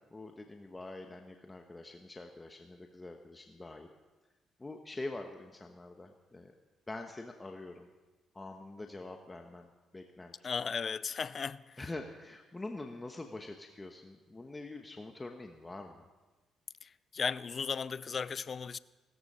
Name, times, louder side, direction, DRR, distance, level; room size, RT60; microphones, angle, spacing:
voice 1, 0.0-3.9 4.6-6.5 6.9-7.9 8.3-10.5 11.8-16.1, left 2 dB, 20° left, 1.1 m, -45 dB
voice 2, 10.4-11.8 16.8-18.8, left 6 dB, 45° left, 0.4 m, -36 dB
16.0 x 14.0 x 5.6 m
cardioid pair, 90°, 0 cm